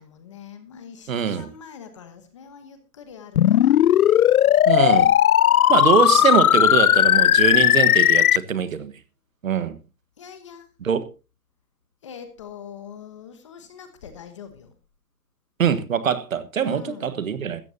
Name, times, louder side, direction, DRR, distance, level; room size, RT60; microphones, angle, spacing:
voice 1, 0.0-3.8 10.2-10.7 12.0-14.7 16.6-17.1, left 7 dB, 20° left, 1.0 m, -42 dB
voice 2, 1.1-1.5 4.7-5.1 5.7-9.0 9.4-9.8 10.8-11.0 15.6-17.6, right 7 dB, 55° right, 1.5 m, -23 dB
sound 1, 3.4-8.4, left 11 dB, 65° left, 0.5 m, -16 dB
16.0 x 14.0 x 2.8 m
hypercardioid pair, 170°, 48 cm